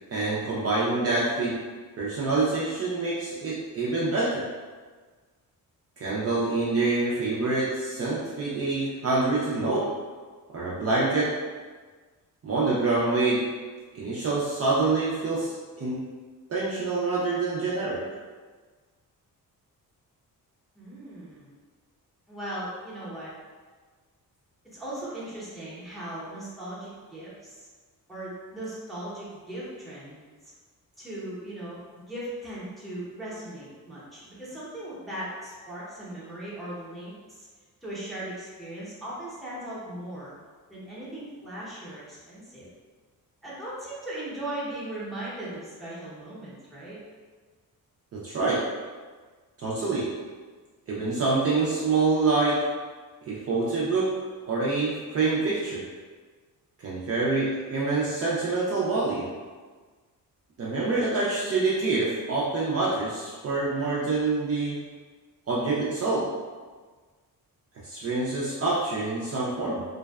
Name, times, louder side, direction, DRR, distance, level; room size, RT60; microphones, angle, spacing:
voice 1, 0.1-1.6 2.0-4.4 6.0-9.9 10.5-11.3 12.4-13.5 13.9-16.0 16.5-18.0 48.1-48.6 49.6-50.1 50.9-52.6 53.3-54.2 54.5-55.8 56.8-59.3 60.6-64.8 65.5-66.3 67.8-69.8, right 3 dB, 45° right, -7 dB, 0.4 m, -26 dB
voice 2, 20.7-21.5 22.3-23.3 24.7-27.7 28.1-30.2 31.0-31.8 32.1-37.5 37.8-40.3 40.7-42.7 43.4-47.0, right 1 dB, ahead, -9 dB, 0.7 m, -38 dB
2.5 x 2.1 x 2.2 m, 1.4 s
cardioid pair, 125°, 36 cm